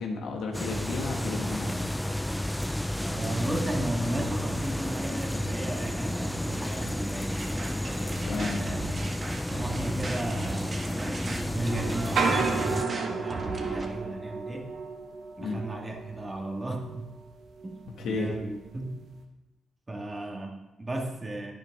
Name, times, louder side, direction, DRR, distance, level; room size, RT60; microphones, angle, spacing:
voice 1, 0.0-1.9 8.3-8.6 15.4-15.6 18.0-18.4, left 3 dB, 75° left, 1 dB, 1.8 m, -32 dB
sound 1, 0.5-12.8, left 1 dB, 10° left, 0.5 m, -31 dB
voice 2, 3.0-7.4 8.3-8.8 9.5-14.7 15.4-17.1 17.6-19.0 19.9-21.5, right 1 dB, 25° right, 2 dB, 2.0 m, -35 dB
sound 2, 7.3-13.9, right 3 dB, 40° right, 1.6 m, -37 dB
sound 3, 11.1-11.5 12.0-17.3 17.6-18.3 18.8-19.0, right 4 dB, 70° right, 1.2 m, -32 dB
11.0 x 9.1 x 3.7 m, 1.1 s
supercardioid pair, 60°, 0 cm